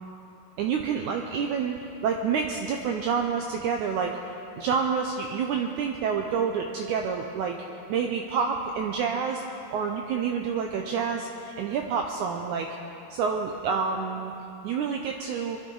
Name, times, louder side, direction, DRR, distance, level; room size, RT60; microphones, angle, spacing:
voice 1, 0.6-4.2 4.6-7.6 7.9-12.8 13.1-14.3 14.6-15.6, right 6 dB, 80° right, 3 dB, 1.8 m, -28 dB
22.5 x 13.0 x 3.9 m, 2.9 s
omnidirectional pair, 4.1 m